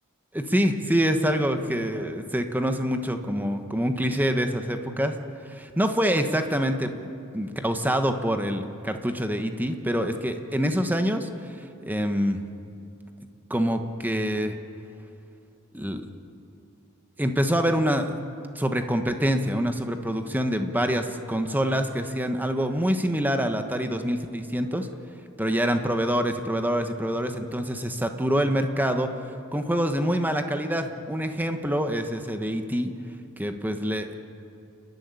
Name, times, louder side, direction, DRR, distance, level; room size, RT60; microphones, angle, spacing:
voice 1, 0.3-5.1 5.5-6.9 7.3-11.3 11.8-12.4 13.5-14.5 15.7-16.1 17.2-18.2 18.5-24.9 25.4-29.1 29.5-32.9 33.4-34.1, equal, 10° right, 6 dB, 1.2 m, -26 dB
29.5 x 12.0 x 9.8 m, 2.7 s
head